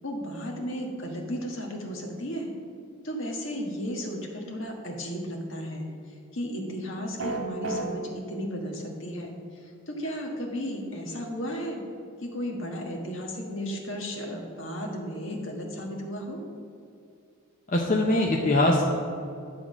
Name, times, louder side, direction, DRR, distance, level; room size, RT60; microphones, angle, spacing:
voice 1, 0.0-2.5 3.0-11.8 12.2-16.4, equal, 60° left, 1 dB, 1.4 m, -34 dB
sound 1, 7.2-7.9, right 2 dB, 55° right, 1.5 m, -30 dB
voice 2, 17.7-18.8, left 1 dB, 35° left, -1 dB, 0.6 m, -22 dB
10.5 x 3.7 x 7.2 m, 2.5 s
head